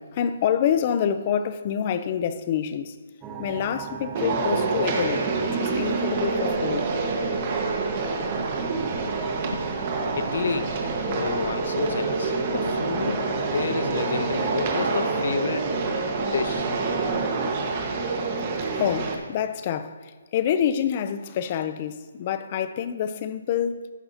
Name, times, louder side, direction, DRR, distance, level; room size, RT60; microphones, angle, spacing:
voice 1, 0.0-3.0 3.4-6.9 18.7-23.9, left 8 dB, 30° left, 0.7 m, -27 dB
sound 1, 3.2-17.2, right 6 dB, 15° right, 1.0 m, -38 dB
sound 2, 4.2-19.2, right 3 dB, 35° right, 1.6 m, -27 dB
voice 2, 10.2-10.8 11.1-15.8 16.3-16.9, left 5 dB, 60° left, 0.9 m, -30 dB
15.0 x 11.0 x 2.9 m
hypercardioid pair, 160°, 0 cm